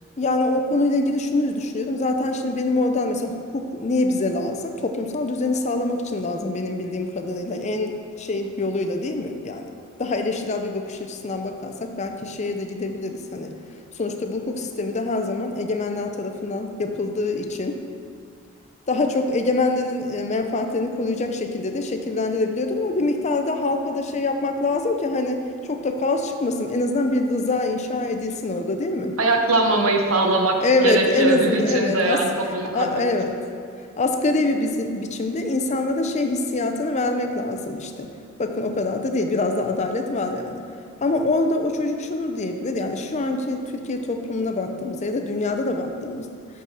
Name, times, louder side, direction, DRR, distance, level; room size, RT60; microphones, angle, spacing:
voice 1, 0.2-9.7 10.0-13.5 14.0-17.8 18.9-29.2 30.6-32.2 32.7-33.3 34.0-38.1 38.4-40.6 41.0-46.3, left 2 dB, 35° left, 5 dB, 0.5 m, -24 dB
voice 2, 29.2-30.6 30.8-33.0, right 2 dB, 80° right, 2 dB, 0.9 m, -21 dB
6.2 x 5.8 x 5.5 m, 2.2 s
head